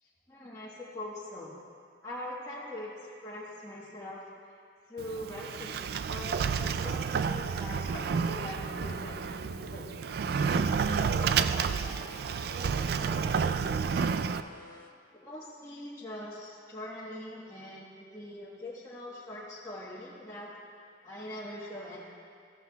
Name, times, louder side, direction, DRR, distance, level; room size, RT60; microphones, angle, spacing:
voice 1, 0.0-1.6 2.0-4.6 4.8-9.9 15.1-20.5 21.0-22.0, left 1 dB, 20° left, -8 dB, 1.3 m, -42 dB
Sliding door, 5.0-14.4, right 6 dB, 60° right, 0.3 m, -30 dB
sound 1, 10.8-14.9, left 1 dB, 50° left, 0.7 m, -50 dB
voice 2, 10.9-12.0 12.5-13.6, equal, 20° right, -2 dB, 1.2 m, -46 dB
15.0 x 13.0 x 2.3 m, 2.3 s
head